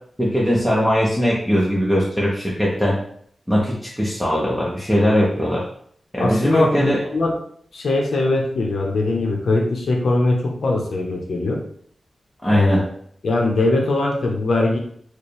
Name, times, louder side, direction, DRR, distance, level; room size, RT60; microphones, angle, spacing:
voice 1, 0.2-3.0 3.5-5.6 6.1-7.0 12.4-12.8, equal, ahead, -5 dB, 0.7 m, -20 dB
voice 2, 6.2-7.3 7.7-11.6 12.5-12.8 13.2-14.8, left 2 dB, 75° left, 1 dB, 0.8 m, -21 dB
4.4 x 2.2 x 3.3 m, 0.63 s
wide cardioid pair, 105°, 0 cm